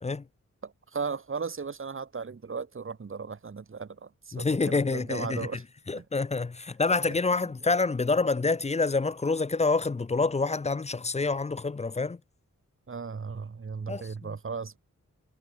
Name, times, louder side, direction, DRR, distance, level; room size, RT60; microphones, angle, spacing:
voice 1, 0.6-5.6 5.9-6.1 12.9-14.8, right 5 dB, 45° right, 2.0 m, -36 dB
voice 2, 4.3-5.5 5.9-12.2 13.9-14.4, left 3 dB, 20° left, 0.5 m, -27 dB
wide cardioid pair, 120°, 30 cm